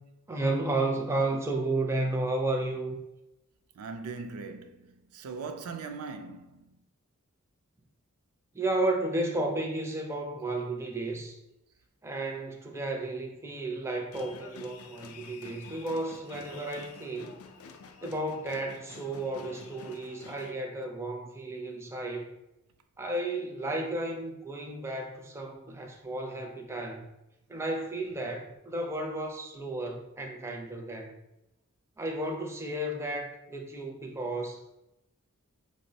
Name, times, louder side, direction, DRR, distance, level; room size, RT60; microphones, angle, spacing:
voice 1, 0.3-3.0 8.5-11.4 12.0-17.3 18.0-22.3 23.0-27.1 27.5-31.2 32.0-34.8, right 2 dB, 10° right, 0.4 m, -33 dB
voice 2, 3.8-6.8, right 4 dB, 80° right, 0.4 m, -40 dB
sound 1, 14.1-20.5, left 5 dB, 80° left, 0.4 m, -48 dB
5.1 x 2.0 x 2.6 m
head